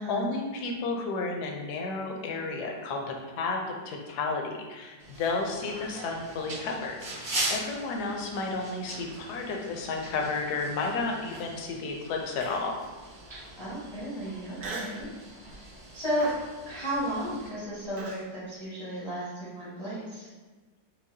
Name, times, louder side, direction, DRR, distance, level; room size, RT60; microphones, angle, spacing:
voice 1, 0.0-12.8, left 3 dB, 70° left, 1 dB, 1.0 m, -32 dB
sound 1, 5.0-17.5, right 1 dB, 35° right, 1.0 m, -40 dB
Human voice, 12.4-12.8 13.4-13.5 14.6-15.1 15.5-15.8 16.2-18.2, right 3 dB, 70° right, 0.7 m, -40 dB
voice 2, 13.6-15.1 15.9-16.3 16.7-20.3, equal, 25° left, -10 dB, 0.6 m, -33 dB
4.7 x 2.2 x 2.6 m, 1.3 s
omnidirectional pair, 1.9 m